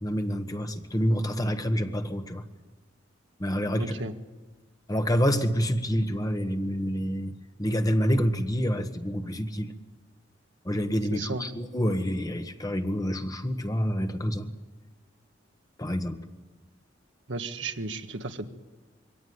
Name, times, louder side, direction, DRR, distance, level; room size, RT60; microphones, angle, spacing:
voice 1, 0.0-2.4 3.4-3.9 4.9-9.7 10.6-14.5 15.8-16.2, equal, 20° left, 7 dB, 1.4 m, -27 dB
voice 2, 3.8-4.1 11.1-11.5 17.3-18.5, right 3 dB, 75° right, 6 dB, 1.6 m, -34 dB
23.5 x 17.5 x 9.5 m, 1.2 s
head